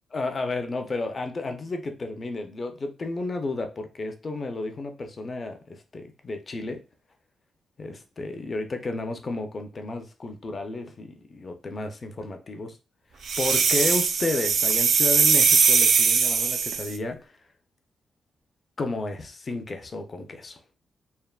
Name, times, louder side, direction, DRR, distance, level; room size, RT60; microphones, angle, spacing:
voice 1, 0.1-6.8 7.8-12.8 13.4-17.3 18.8-20.6, left 2 dB, 35° left, 0.5 m, -32 dB
sound 1, 13.3-16.9, right 5 dB, 70° right, 0.4 m, -21 dB
3.3 x 2.1 x 2.3 m
cardioid pair, 115°, 0 cm